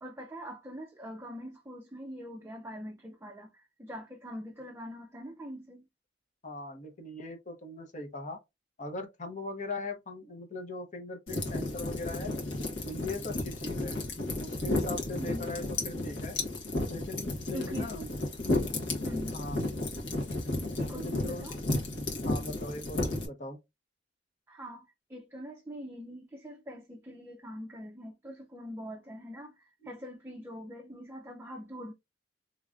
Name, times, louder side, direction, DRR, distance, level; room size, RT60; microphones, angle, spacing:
voice 1, 0.0-5.8 15.2-15.5 17.5-17.9 19.0-19.4 20.8-21.6 24.5-31.9, equal, 15° right, 0.5 m, -43 dB
voice 2, 6.4-8.4 8.8-12.3 12.8-14.0 14.4-16.4 16.9-18.1 19.3-19.7 20.9-21.5 22.2-23.6, left 2 dB, 45° left, 0.9 m, -40 dB
sound 1, 11.3-23.3, left 2 dB, 80° left, 1.5 m, -33 dB
3.5 x 3.2 x 2.5 m
head